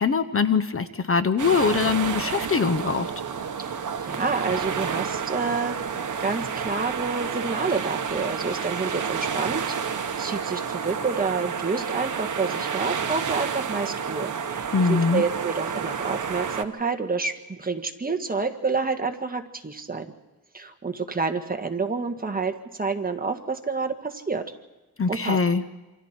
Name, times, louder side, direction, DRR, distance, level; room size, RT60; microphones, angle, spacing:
voice 1, 0.0-3.1 14.7-15.2 25.0-25.6, left 5 dB, 35° left, 11 dB, 0.8 m, -22 dB
sound 1, 1.4-16.6, right 6 dB, 55° right, 1.3 m, -30 dB
voice 2, 3.6-5.8 6.2-20.0 20.5-24.4 25.1-25.4, right 4 dB, 25° right, 5 dB, 1.6 m, -29 dB
27.5 x 25.5 x 4.5 m, 1.1 s
wide cardioid pair, 120°, 37 cm